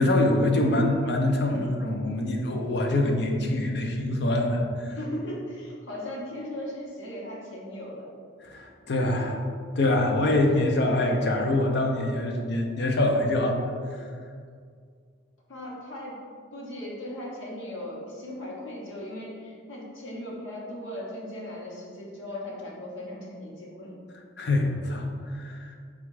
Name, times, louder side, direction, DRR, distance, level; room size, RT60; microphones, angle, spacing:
voice 1, 0.0-5.0 8.5-9.4 9.8-13.6 13.9-14.0 24.4-25.7, left 1 dB, 55° left, 2 dB, 0.5 m, -25 dB
voice 2, 4.9-8.1 15.5-16.2 16.5-24.0, left 1 dB, 70° left, -4 dB, 1.0 m, -38 dB
4.2 x 2.4 x 4.7 m, 2.1 s
head